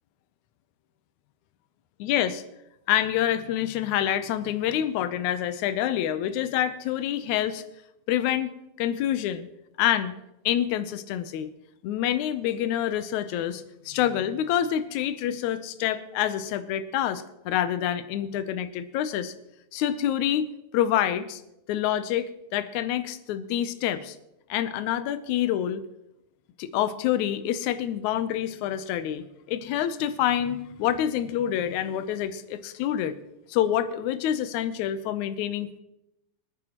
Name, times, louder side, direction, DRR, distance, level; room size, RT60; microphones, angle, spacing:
voice 1, 2.0-2.4 2.9-7.6 8.1-8.5 8.8-9.5 9.8-10.1 10.5-11.5 11.8-19.3 19.7-20.5 20.7-21.4 21.7-24.2 24.5-25.8 26.6-33.1 33.5-35.7, left 11 dB, 85° left, 11 dB, 2.1 m, -27 dB
24.5 x 9.9 x 3.0 m, 0.87 s
omnidirectional pair, 3.3 m